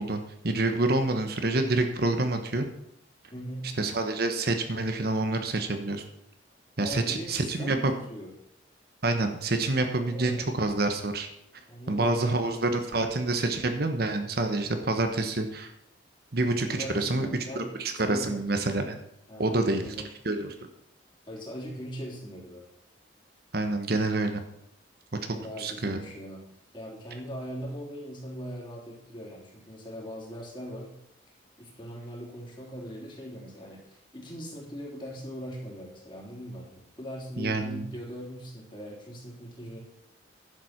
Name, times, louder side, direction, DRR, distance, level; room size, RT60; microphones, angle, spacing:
voice 1, 0.0-2.7 3.8-6.0 6.8-7.9 9.0-11.3 11.9-15.7 16.3-17.3 17.5-19.0 19.4-19.9 20.2-20.5 23.5-24.4 25.2-26.0 37.4-37.8, right 2 dB, 55° right, 7 dB, 1.1 m, -27 dB
voice 2, 3.3-3.8 6.8-8.3 9.9-10.5 11.7-12.8 16.7-18.6 19.3-20.1 21.3-22.6 25.3-26.4 26.7-30.9 31.6-39.8, equal, 25° left, -2 dB, 3.4 m, -40 dB
11.0 x 7.6 x 6.0 m, 0.76 s
head